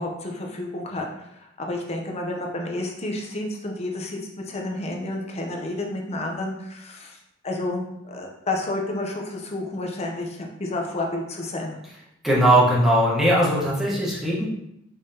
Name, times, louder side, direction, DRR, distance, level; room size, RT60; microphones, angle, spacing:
voice 1, 0.0-7.2 7.4-11.8, left 2 dB, 35° left, 1 dB, 0.7 m, -30 dB
voice 2, 12.2-14.5, right 1 dB, ahead, -7 dB, 1.2 m, -19 dB
5.3 x 3.4 x 2.8 m, 0.82 s
head